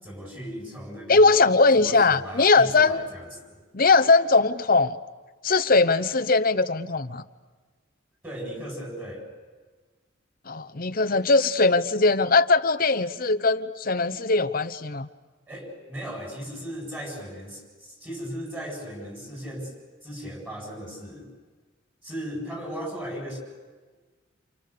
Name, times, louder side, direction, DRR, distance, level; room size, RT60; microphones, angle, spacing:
voice 1, 0.0-3.6 8.2-9.3 15.5-19.7 20.0-21.3 22.0-23.4, equal, 10° right, 1 dB, 7.9 m, -37 dB
voice 2, 1.1-3.1 3.7-5.0 5.4-7.2 10.5-15.1, left 3 dB, 45° left, 12 dB, 0.9 m, -20 dB
29.5 x 28.5 x 6.9 m, 1.4 s
head